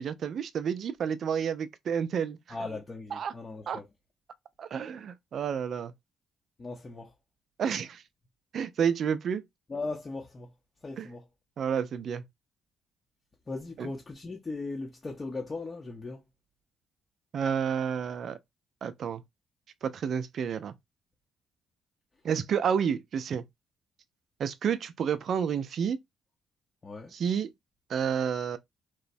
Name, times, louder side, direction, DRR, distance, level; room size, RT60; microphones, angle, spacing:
voice 1, 0.0-2.4 3.1-3.3 3.7-3.8 4.6-5.9 7.6-8.0 8.5-9.4 11.0-11.1 11.6-12.2 13.8-13.9 17.3-18.4 18.8-19.2 19.8-20.7 22.2-23.4 24.4-26.0 27.1-27.5 27.9-28.6, right 7 dB, 60° right, 0.3 m, -30 dB
voice 2, 2.5-3.8 6.6-7.1 9.7-10.5 10.8-11.2 13.5-16.2 26.8-27.1, left 3 dB, 30° left, 0.6 m, -38 dB
3.0 x 2.0 x 2.5 m
cardioid pair, 90°, 0 cm